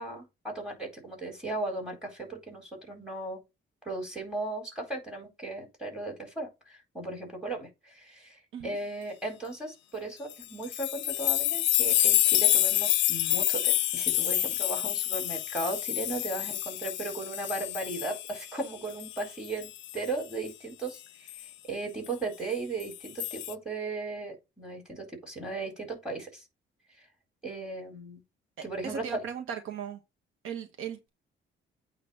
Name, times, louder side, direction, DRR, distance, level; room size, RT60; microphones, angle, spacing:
voice 1, 0.0-3.4 3.8-21.0 21.4-26.4 27.4-28.2 28.6-29.2, right 2 dB, 5° right, 4.2 m, -36 dB
sound 1, 10.3-18.6 19.0-20.1 21.3-21.4 22.8-23.5, left 14 dB, 70° left, 0.5 m, -27 dB
voice 2, 28.6-30.0 30.4-31.1, right 7 dB, 85° right, 1.2 m, -38 dB
8.7 x 3.1 x 5.6 m
cardioid pair, 90°, 20 cm